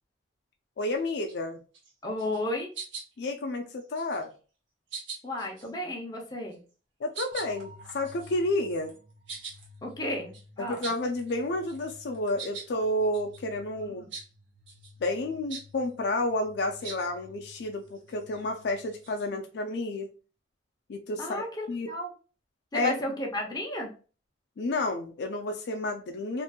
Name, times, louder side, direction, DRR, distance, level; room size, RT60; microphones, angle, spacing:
voice 1, 0.8-1.6 3.2-4.3 7.0-8.9 10.6-14.0 15.0-20.1 20.9-21.4 21.7-21.9 22.7-22.9 24.6-26.4, left 1 dB, 60° left, 4 dB, 0.4 m, -30 dB
sound 1, 0.9-1.3 1.7-1.9 2.2-2.5 2.7-3.3 3.8-4.3 4.9-5.7 6.5-6.7 7.1-11.4 11.7-12.7 13.1-13.4 14.1-14.3 14.7-14.9 15.5-15.7 16.8-17.1 17.7-19.3, right 5 dB, 90° right, 0.9 m, -43 dB
voice 2, 2.0-2.7 5.2-6.6 9.8-10.9 13.8-14.1 19.3-19.4 21.2-22.1 22.7-23.9, left 1 dB, 20° left, 0 dB, 0.7 m, -33 dB
sound 2, 7.3-19.3, left 2 dB, 40° right, 0.5 m, -54 dB
2.8 x 2.5 x 2.2 m, 0.36 s
head